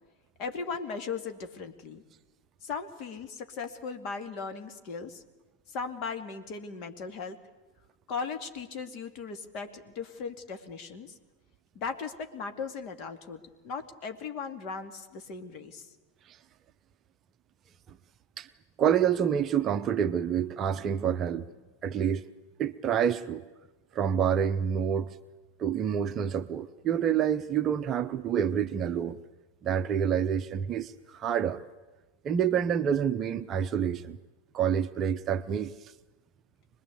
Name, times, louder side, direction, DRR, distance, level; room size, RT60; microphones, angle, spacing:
voice 1, 0.4-2.0 2.6-5.2 5.7-7.4 8.1-11.2 11.7-15.9, left 5 dB, 40° left, 7 dB, 2.5 m, -37 dB
voice 2, 18.8-21.4 21.8-22.2 22.6-23.4 23.9-25.1 25.6-29.2 29.6-31.6 32.2-34.2 34.5-35.7, right 8 dB, 30° right, 10 dB, 0.8 m, -27 dB
25.0 x 21.0 x 8.3 m, 1.2 s
figure-of-eight pair, 90°, 0 cm